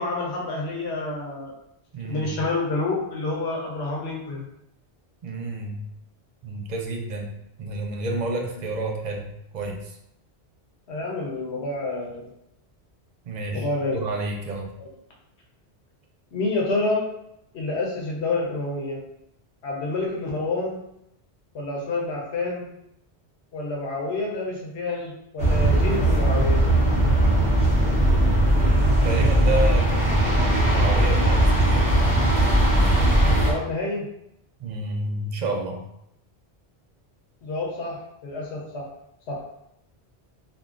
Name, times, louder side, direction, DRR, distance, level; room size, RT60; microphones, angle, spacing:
voice 1, 0.0-1.5 2.0-4.5 10.9-12.3 13.5-14.0 14.8-14.9 16.3-17.1 17.5-19.0 19.6-20.8 21.5-22.7 23.5-26.6 33.4-34.1 37.4-38.9 39.3-39.4, left 2 dB, 80° left, -2 dB, 1.1 m, -28 dB
voice 2, 1.9-2.3 5.2-5.8 6.4-10.0 13.3-14.7 26.9-27.9 29.0-32.0 34.6-35.8, right 2 dB, 55° right, 2 dB, 0.5 m, -30 dB
sound 1, 25.4-33.5, right 1 dB, 5° left, 0.9 m, -19 dB
3.6 x 2.2 x 2.4 m, 0.79 s
omnidirectional pair, 1.1 m